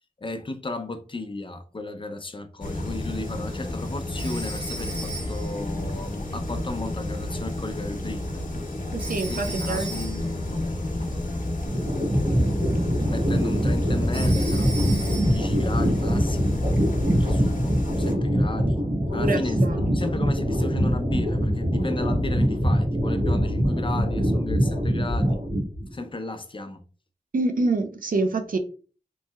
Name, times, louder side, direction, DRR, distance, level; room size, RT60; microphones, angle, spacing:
voice 1, 0.2-8.4 9.3-11.1 13.1-16.7 17.2-18.9 19.1-19.6 19.9-25.4 25.9-26.9, left 2 dB, 40° left, 0.4 m, -35 dB
sound 1, 2.6-18.2, left 1 dB, 75° left, 0.7 m, -30 dB
Telephone, 4.2-5.6 9.0-10.4 14.1-15.5, right 2 dB, 40° right, 1.1 m, -37 dB
voice 2, 8.9-10.0 19.2-19.9 27.3-28.6, right 3 dB, 85° right, 0.5 m, -26 dB
sound 2, 11.7-25.9, equal, 65° right, 1.2 m, -24 dB
3.1 x 2.7 x 2.2 m
wide cardioid pair, 60°, 14 cm